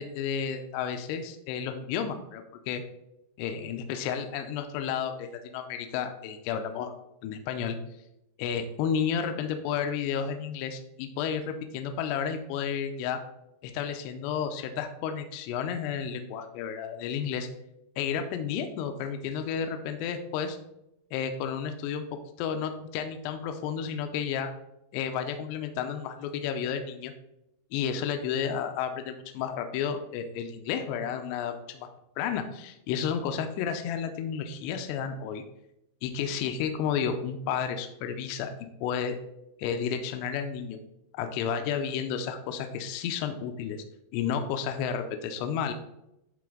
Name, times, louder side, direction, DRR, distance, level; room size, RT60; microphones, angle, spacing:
voice 1, 0.0-2.8 3.4-7.0 7.2-7.8 8.4-13.2 13.6-17.5 18.0-20.6 21.1-22.1 22.4-24.5 24.9-27.1 27.7-31.9 32.2-35.4 36.0-38.5 38.8-39.2 39.6-40.8 41.1-43.8 44.1-45.7, left 7 dB, 85° left, 6 dB, 2.6 m, -32 dB
10.5 x 4.2 x 3.8 m, 0.84 s
omnidirectional pair, 5.2 m